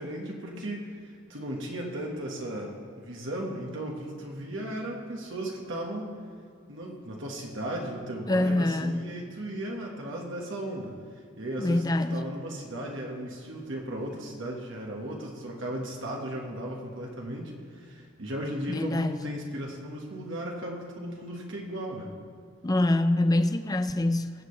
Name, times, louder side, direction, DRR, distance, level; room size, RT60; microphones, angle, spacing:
voice 1, 0.0-6.1 6.7-10.9 11.4-11.8 12.1-22.1, right 1 dB, 70° right, 1.5 m, -36 dB
voice 2, 8.3-9.1 11.6-12.3 18.7-19.2 22.6-24.3, left 1 dB, 20° left, 0.4 m, -25 dB
22.5 x 7.6 x 3.3 m
head